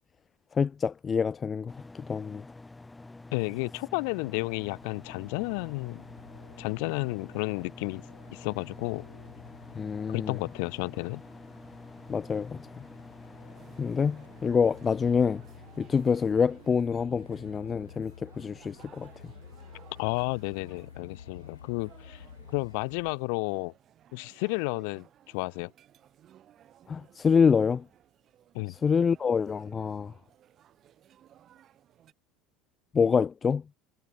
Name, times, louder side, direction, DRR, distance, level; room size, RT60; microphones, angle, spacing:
voice 1, 0.6-1.7 2.1-2.4 9.8-10.3 12.1-12.6 13.8-15.4 15.8-19.1 26.9-27.8 28.7-30.1 32.9-33.6, left 6 dB, 30° left, 0.3 m, -26 dB
sound 1, 1.7-16.8, left 2 dB, 15° left, 1.0 m, -48 dB
voice 2, 3.3-6.0 6.6-8.0 8.3-9.1 10.1-11.2 20.0-22.2 22.5-23.7 24.1-25.1 25.3-25.7 28.5-28.7, left 33 dB, 65° left, 0.9 m, -32 dB
Truck, 4.5-23.2, left 7 dB, 90° left, 6.2 m, -52 dB
sound 2, 13.5-32.1, right 11 dB, 45° right, 6.9 m, -58 dB
hypercardioid pair, 75°, 0 cm